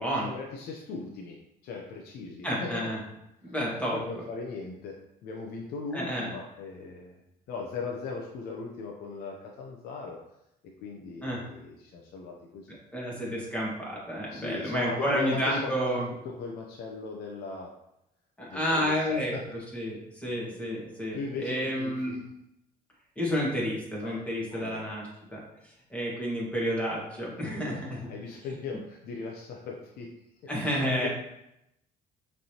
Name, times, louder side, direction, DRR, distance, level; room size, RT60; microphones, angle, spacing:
voice 1, 0.0-1.4 1.6-2.8 3.4-3.6 3.9-7.2 7.5-10.2 10.8-12.8 14.3-15.9 16.2-17.7 18.5-19.4 20.2-20.4 21.1-22.2 24.0-24.2 24.5-24.9 27.4-27.8 28.1-30.1 30.6-31.1, left 4 dB, 70° left, 0 dB, 0.7 m, -38 dB
voice 2, 2.4-3.0 3.4-4.0 5.9-6.3 11.2-11.4 12.9-16.0 18.4-19.3 19.7-22.2 23.2-25.0 25.3-25.4 25.9-28.1 30.5-31.1, equal, 10° left, -4 dB, 1.6 m, -30 dB
5.3 x 3.3 x 2.9 m, 0.83 s
cardioid pair, 110°, 17 cm